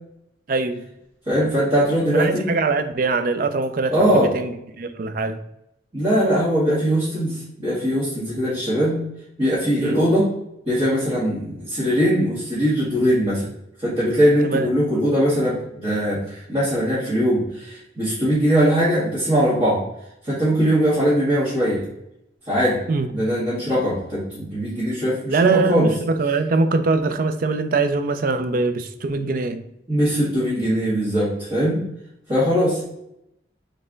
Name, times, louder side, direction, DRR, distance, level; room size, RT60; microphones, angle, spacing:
voice 1, 0.5-0.8 2.1-5.4 9.8-10.0 14.5-14.7 22.9-23.1 25.3-29.6, right 3 dB, 50° right, 9 dB, 0.4 m, -22 dB
voice 2, 1.3-2.5 3.9-4.3 5.9-9.0 9.4-10.3 10.7-13.5 13.8-19.8 20.2-21.8 22.5-22.8 23.1-25.9 29.9-31.8 32.3-32.8, equal, 30° right, -11 dB, 1.8 m, -20 dB
4.2 x 3.4 x 3.8 m, 0.81 s
head